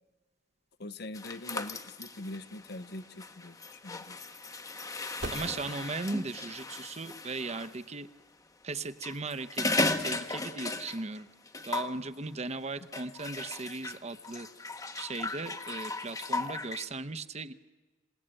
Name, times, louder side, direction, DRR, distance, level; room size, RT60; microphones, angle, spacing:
voice 1, 0.8-4.2, left 2 dB, 60° left, 12 dB, 0.9 m, -43 dB
sound 1, 1.1-7.7 8.8-11.2 11.5-12.0 12.9-16.8, left 2 dB, 20° left, 1.0 m, -36 dB
sound 2, 2.9-9.9, right 2 dB, 65° right, 2.1 m, -48 dB
voice 2, 5.3-8.1 8.6-11.3 11.6-14.5 14.9-17.5, right 3 dB, 35° right, 12 dB, 0.9 m, -37 dB
26.5 x 18.0 x 9.0 m, 1.3 s
head